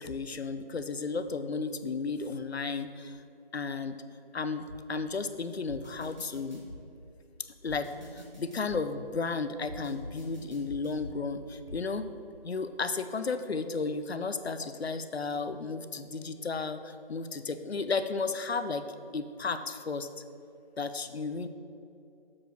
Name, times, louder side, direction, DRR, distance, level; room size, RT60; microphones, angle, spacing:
voice 1, 0.0-3.2 3.5-4.0 4.3-6.6 7.4-12.1 12.4-18.8 19.1-20.1 20.8-21.5, left 4 dB, 90° left, 11 dB, 0.7 m, -33 dB
sound 1, 4.7-4.8 5.7-6.8 7.7-8.8 9.7-11.2 11.7-11.8, equal, 45° right, 1.8 m, -44 dB
7.3 x 4.9 x 6.2 m, 2.6 s
figure-of-eight pair, 180°, 31 cm